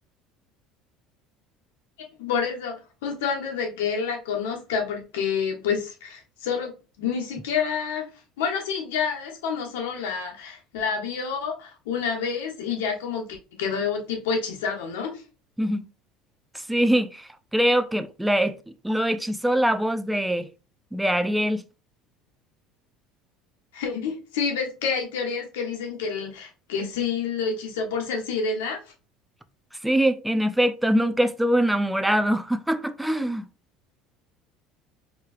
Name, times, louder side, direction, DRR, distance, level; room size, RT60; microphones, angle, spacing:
voice 1, 2.2-6.7 7.0-8.1 8.4-15.2 23.7-28.8, left 6 dB, 90° left, 1.3 m, -28 dB
voice 2, 15.6-15.9 16.5-18.6 18.8-20.5 20.9-21.6 29.8-33.5, equal, 5° right, 0.5 m, -23 dB
4.5 x 3.2 x 2.4 m
supercardioid pair, 95°, 0 cm